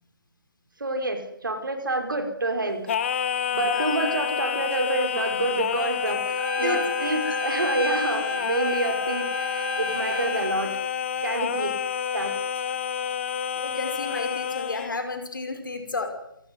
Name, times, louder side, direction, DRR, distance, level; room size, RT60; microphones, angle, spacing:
voice 1, 0.8-2.8 3.5-10.8 11.2-11.8 12.1-12.3, right 2 dB, 65° right, 7 dB, 5.3 m, -28 dB
Singing, 2.9-15.0, left 8 dB, 35° left, 1.4 m, -29 dB
Trumpet, 6.4-10.6, equal, 90° right, 3.0 m, -32 dB
voice 2, 13.6-16.1, left 3 dB, 60° left, 7 dB, 5.8 m, -32 dB
27.5 x 18.0 x 9.8 m, 0.78 s
figure-of-eight pair, 145°, 12 cm